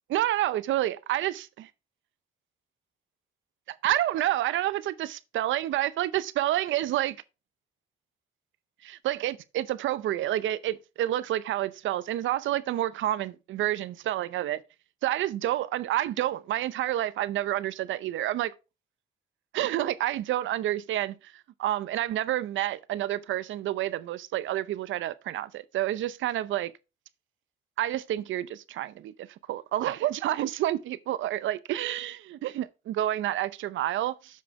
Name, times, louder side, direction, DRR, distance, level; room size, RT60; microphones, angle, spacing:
voice 1, 0.1-1.7 3.7-7.2 8.8-14.6 15.0-18.5 19.5-26.7 27.8-34.4, right 13 dB, 75° right, 0.7 m, -29 dB
7.4 x 5.5 x 4.7 m
cardioid pair, 90°, 20 cm